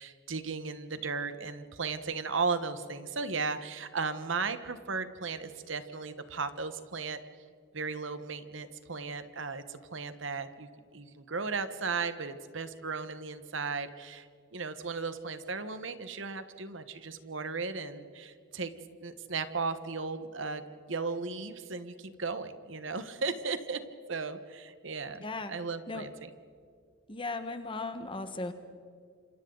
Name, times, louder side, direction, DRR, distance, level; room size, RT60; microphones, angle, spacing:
voice 1, 0.0-7.2 7.7-18.7 19.0-20.6 20.9-23.8 24.1-26.1, right 4 dB, 70° right, 10 dB, 1.3 m, -36 dB
voice 2, 25.2-25.5 25.9-26.0 27.1-28.5, left 3 dB, 25° left, 9 dB, 1.4 m, -36 dB
28.5 x 27.0 x 4.0 m, 2.2 s
head